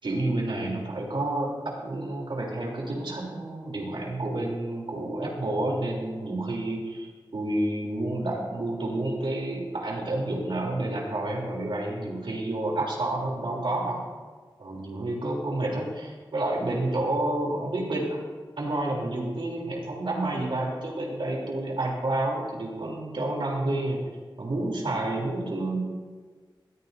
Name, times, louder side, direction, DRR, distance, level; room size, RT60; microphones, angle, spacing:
voice 1, 0.0-14.0 14.6-18.2 18.6-24.0 24.4-25.8, right 2 dB, 85° right, -2 dB, 3.4 m, -29 dB
20.0 x 15.0 x 2.7 m, 1.4 s
wide cardioid pair, 80°, 8 cm